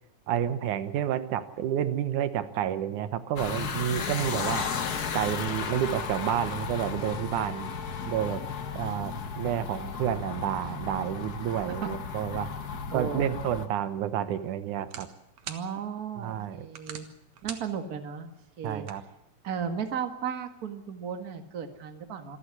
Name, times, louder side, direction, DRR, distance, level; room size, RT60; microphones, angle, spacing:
voice 1, 0.3-4.7 5.1-7.8 8.0-8.4 8.8-12.5 12.9-15.1 16.2-16.7 18.6-19.0, right 10 dB, 90° right, 12 dB, 2.6 m, -30 dB
sound 1, 3.4-13.7, left 6 dB, 50° left, 1.2 m, -34 dB
Wind instrument woodwind instrument, 4.9-8.8, left 7 dB, 65° left, 3.6 m, -45 dB
voice 2, 12.9-13.4 15.5-17.1 17.4-18.8 19.4-22.4, right 7 dB, 35° right, 7 dB, 1.9 m, -35 dB
sound 2, 13.7-19.7, right 8 dB, 65° right, 2.7 m, -47 dB
26.5 x 11.5 x 9.8 m, 0.80 s
omnidirectional pair, 3.4 m